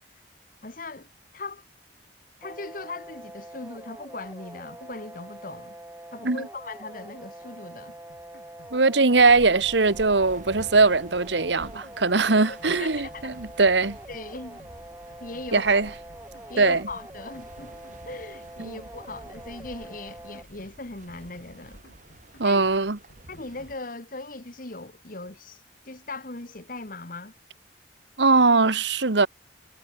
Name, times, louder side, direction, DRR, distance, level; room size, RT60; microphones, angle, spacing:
voice 1, 0.6-1.6 2.4-5.8 6.1-8.0 12.5-13.3 14.1-14.6 15.2-15.8 16.5-21.8 22.4-22.7 23.3-25.6 25.9-27.3, left 3 dB, 50° left, 1.9 m, -39 dB
sound 1, 2.4-20.4, right 1 dB, 15° right, 4.2 m, -45 dB
sound 2, 7.9-8.8 9.1-10.8 11.1-12.8 13.1-14.8 15.1-16.8 17.1-18.8 19.1-20.8 21.1-22.8 23.1-23.9, left 1 dB, 65° left, 6.3 m, -56 dB
voice 2, 8.7-14.0 15.5-15.9 16.6-16.8 18.6-18.7 22.4-23.0 28.2-29.3, right 3 dB, 80° right, 1.5 m, -20 dB
sound 3, 9.2-23.8, right 1 dB, 45° right, 3.8 m, -49 dB
head